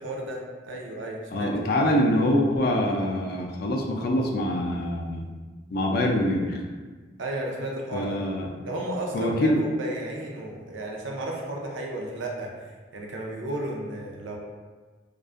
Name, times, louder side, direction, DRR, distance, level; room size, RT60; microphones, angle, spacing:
voice 1, 0.0-1.5 7.2-8.2 8.6-12.5 12.9-14.4, right 1 dB, 75° right, -1 dB, 0.4 m, -33 dB
voice 2, 1.3-5.3 5.7-6.6 7.9-8.5 9.1-9.6, left 1 dB, 50° left, 0 dB, 0.3 m, -24 dB
2.4 x 2.2 x 2.4 m, 1.4 s
head